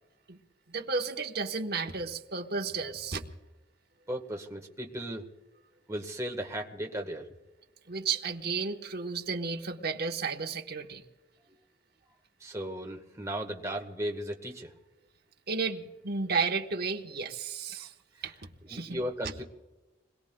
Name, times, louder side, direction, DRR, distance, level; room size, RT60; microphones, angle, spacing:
voice 1, 0.7-3.2 7.9-11.0 15.5-17.9 18.2-18.3 18.7-19.0, right 4 dB, 55° right, 3 dB, 1.1 m, -33 dB
voice 2, 4.1-5.2 5.9-7.3 12.4-14.7 18.7-19.4, equal, 15° right, 2 dB, 1.3 m, -36 dB
27.5 x 21.5 x 2.3 m, 1.1 s
head